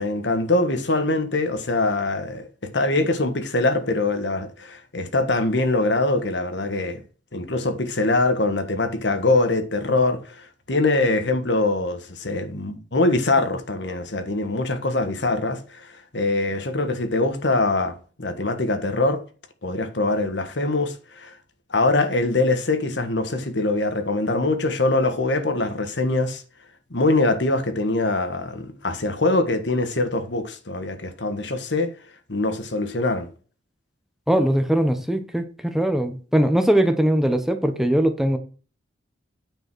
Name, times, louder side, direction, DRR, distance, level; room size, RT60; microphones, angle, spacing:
voice 1, 0.0-7.0 7.3-19.2 19.6-21.3 21.7-26.4 26.9-31.9 32.3-33.3, left 2 dB, 70° left, 1.5 m, -23 dB
voice 2, 34.3-38.4, right 1 dB, ahead, 0.9 m, -21 dB
9.3 x 5.3 x 6.2 m
head